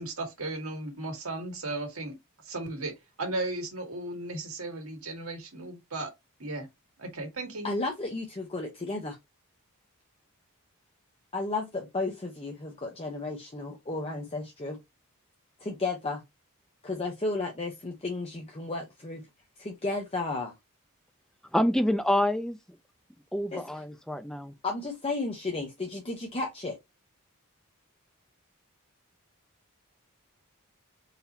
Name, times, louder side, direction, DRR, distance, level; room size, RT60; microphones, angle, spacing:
voice 1, 0.0-2.2 2.4-6.1 6.4-6.7 7.0-7.7, right 2 dB, 70° right, 1.8 m, -35 dB
voice 2, 7.6-9.2 11.3-14.8 15.6-16.2 16.8-19.2 19.6-20.5 23.5-23.8 24.6-26.8, left 3 dB, 25° left, 0.8 m, -33 dB
voice 3, 21.5-22.6 23.3-24.5, left 1 dB, 5° left, 0.5 m, -27 dB
4.1 x 2.8 x 4.1 m
head